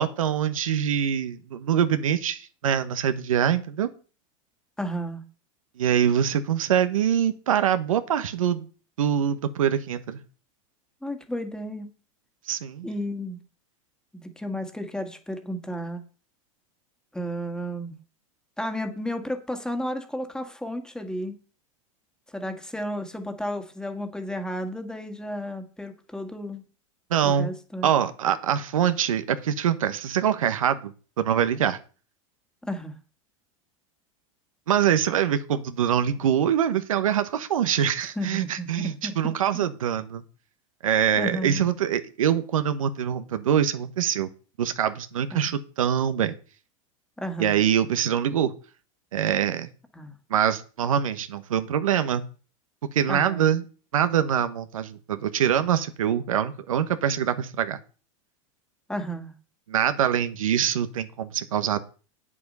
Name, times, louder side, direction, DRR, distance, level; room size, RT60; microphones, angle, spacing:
voice 1, 0.0-3.9 5.8-8.7 9.0-10.2 12.5-12.9 27.1-27.5 27.8-31.8 34.7-40.2 40.8-44.3 44.6-46.3 47.4-48.5 49.1-49.7 50.3-52.3 52.9-53.6 53.9-57.8 59.7-61.8, right 9 dB, 90° right, 10 dB, 1.0 m, -24 dB
voice 2, 4.8-5.2 11.0-11.9 12.8-13.4 14.1-16.0 17.1-17.9 18.6-21.4 22.3-26.6 27.2-27.9 32.6-32.9 38.0-39.6 41.1-41.6 45.3-45.5 47.2-47.6 49.9-50.1 53.1-53.5 58.9-59.3, equal, 5° left, 6 dB, 1.7 m, -33 dB
8.4 x 7.4 x 5.5 m, 0.37 s
hypercardioid pair, 105°, 17 cm